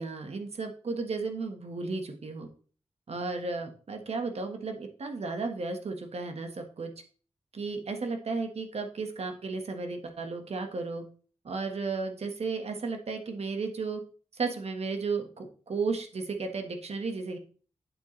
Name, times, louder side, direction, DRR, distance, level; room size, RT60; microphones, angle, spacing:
voice 1, 0.0-2.5 3.1-6.9 7.5-11.0 11.4-14.0 14.3-17.4, right 4 dB, 65° right, 5 dB, 1.5 m, -34 dB
8.5 x 8.0 x 3.3 m, 0.40 s
wide cardioid pair, 120°, 11 cm